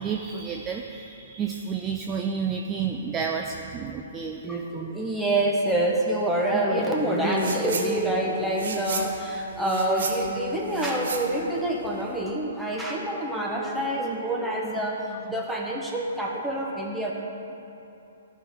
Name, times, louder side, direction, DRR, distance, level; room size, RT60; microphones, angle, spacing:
voice 1, 0.0-4.4, right 6 dB, 20° right, 3 dB, 0.4 m, -30 dB
voice 2, 4.4-17.1, right 1 dB, 5° right, -2 dB, 1.3 m, -26 dB
sound 1, 7.3-7.9 8.2-12.2, right 5 dB, 65° right, 1.0 m, -34 dB
14.0 x 5.4 x 3.7 m, 2.8 s
figure-of-eight pair, 125°, 0 cm